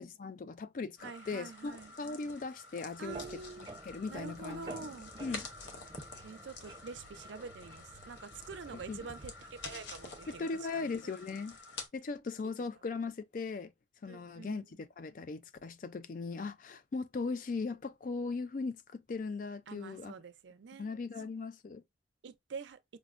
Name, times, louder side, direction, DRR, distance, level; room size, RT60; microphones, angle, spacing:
voice 1, 0.0-3.4 3.8-4.9 5.2-5.5 8.7-9.0 10.3-11.6 11.9-13.7 14.0-20.1 20.8-21.8, left 4 dB, 45° left, 0.3 m, -39 dB
sound 1, 1.0-11.9, left 3 dB, 75° left, 0.8 m, -49 dB
voice 2, 1.0-1.9 3.0-3.7 4.1-5.1 6.2-11.1 14.1-14.7 19.7-20.9 21.2-21.3 22.2-22.8, right 5 dB, 75° right, 0.4 m, -46 dB
sound 2, 3.1-10.4, right 2 dB, 25° right, 0.6 m, -51 dB
5.0 x 2.0 x 2.4 m
head